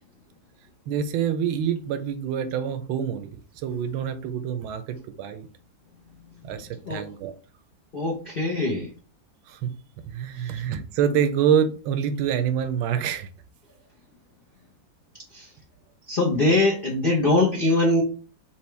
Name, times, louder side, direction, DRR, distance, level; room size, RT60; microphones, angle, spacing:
voice 1, 0.9-5.5 6.4-7.3 9.5-9.7 10.1-13.3, right 8 dB, 85° right, 9 dB, 1.4 m, -26 dB
voice 2, 7.9-8.9 10.4-10.6 15.3-15.5 16.1-18.0, left 2 dB, 45° left, -1 dB, 0.7 m, -22 dB
4.5 x 3.6 x 3.1 m, 0.37 s
omnidirectional pair, 2.2 m